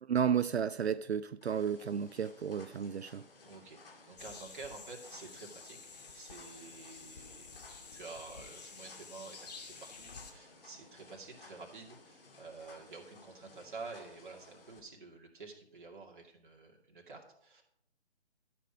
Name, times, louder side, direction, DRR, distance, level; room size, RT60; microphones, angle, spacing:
voice 1, 0.0-3.2, right 8 dB, 70° right, 0.5 m, -32 dB
sound 1, 1.4-14.8, left 3 dB, 55° left, 2.1 m, -58 dB
voice 2, 3.4-5.8 6.1-17.6, right 4 dB, 45° right, 2.4 m, -49 dB
sound 2, 4.2-10.3, left 5 dB, 35° left, 1.4 m, -51 dB
12.5 x 6.1 x 5.1 m
figure-of-eight pair, 150°, 34 cm